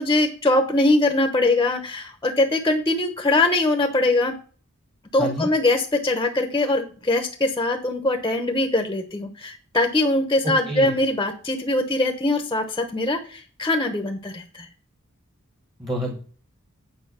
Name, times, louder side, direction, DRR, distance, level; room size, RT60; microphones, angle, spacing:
voice 1, 0.0-4.4 5.1-14.7, left 2 dB, 15° left, 5 dB, 0.9 m, -22 dB
voice 2, 5.2-5.5 10.4-10.9 15.8-16.2, equal, 15° right, 3 dB, 1.3 m, -28 dB
8.8 x 5.1 x 6.8 m, 0.41 s
head